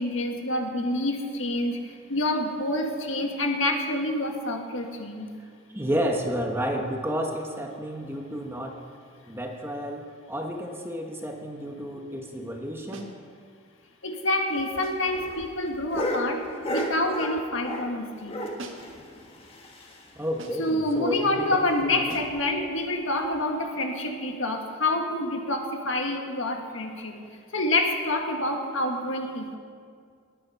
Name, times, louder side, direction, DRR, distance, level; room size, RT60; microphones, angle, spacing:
voice 1, 0.0-5.3 14.0-16.4 16.7-18.3 20.6-27.2 27.5-29.6, left 1 dB, 70° left, 2 dB, 1.8 m, -27 dB
voice 2, 5.4-8.8 9.2-13.1 20.2-22.1, equal, 10° right, 2 dB, 1.2 m, -31 dB
sound 1, 12.9-13.2 14.8-15.1 16.7-17.2 18.6-19.0 20.4-20.7 22.1-22.4, right 2 dB, 70° right, 1.7 m, -43 dB
sound 2, 14.5-18.0 18.3-20.3 20.6-20.7 20.9-21.0 21.4-21.5 22.1-22.4 23.2-23.4, left 1 dB, 25° left, 1.7 m, -34 dB
20.0 x 9.8 x 5.7 m, 2.1 s
head